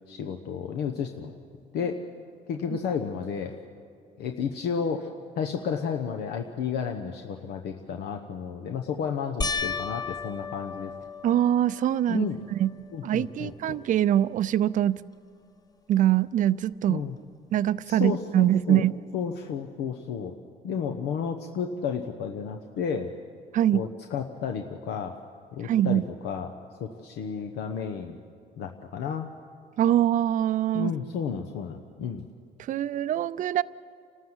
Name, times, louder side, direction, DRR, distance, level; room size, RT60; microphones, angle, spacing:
voice 1, 0.1-1.3 1.7-2.0 2.5-3.5 4.2-5.1 5.4-10.9 12.1-12.4 12.9-13.8 16.9-17.2 17.9-18.9 19.1-20.4 20.6-23.1 23.7-25.1 25.5-26.5 26.8-28.2 28.6-29.3 30.7-32.3, left 6 dB, 80° left, 4 dB, 1.0 m, -32 dB
sound 1, 9.4-12.0 12.6-13.2 13.5-13.6 16.8-16.9, left 5 dB, 20° left, 0.7 m, -34 dB
voice 2, 11.2-12.2 12.6-12.7 13.0-15.0 15.9-17.0 17.5-19.0 23.5-23.8 25.6-26.0 29.8-30.9 32.6-33.6, right 11 dB, 50° right, 16 dB, 0.5 m, -23 dB
29.0 x 13.0 x 8.0 m, 2.3 s
cardioid pair, 110°, 17 cm